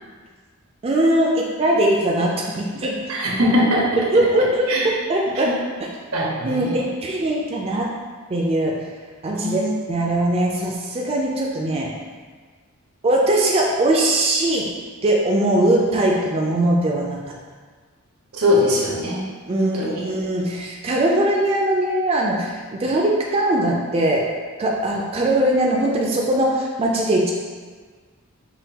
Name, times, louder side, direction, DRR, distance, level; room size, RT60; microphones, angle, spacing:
voice 1, 0.8-3.0 4.1-4.6 5.1-5.6 6.4-7.9 8.3-8.7 9.2-9.6 9.9-11.9 13.0-14.7 15.0-17.2 19.5-24.2 24.6-27.3, right 1 dB, 30° right, -2 dB, 0.4 m, -20 dB
voice 2, 3.1-3.8 4.7-4.8 5.4-5.5 6.1-6.8 9.3-9.7 18.3-19.2 19.5-19.9, left 1 dB, 90° right, -4 dB, 0.9 m, -21 dB
5.6 x 2.3 x 2.8 m, 1.5 s
head